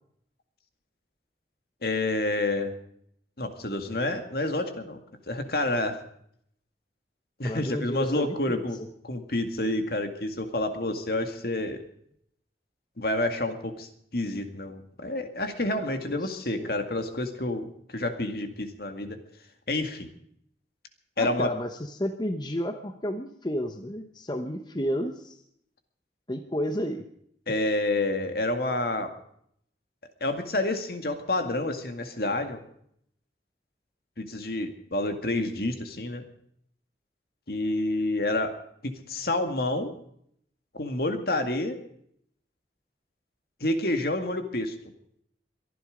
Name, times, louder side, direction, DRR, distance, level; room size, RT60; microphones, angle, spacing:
voice 1, 1.8-2.7 3.4-5.0 5.3-6.0 7.4-8.8 9.0-11.8 13.0-19.2 19.7-20.1 21.2-21.5 27.5-29.1 30.2-32.6 34.2-36.2 37.5-39.9 40.7-41.8 43.6-44.8, left 2 dB, 60° left, 7 dB, 2.1 m, -29 dB
voice 2, 7.4-8.6 16.0-16.7 21.2-25.4 26.3-27.0, equal, 25° left, 7 dB, 1.1 m, -32 dB
22.5 x 11.5 x 5.2 m, 0.69 s
head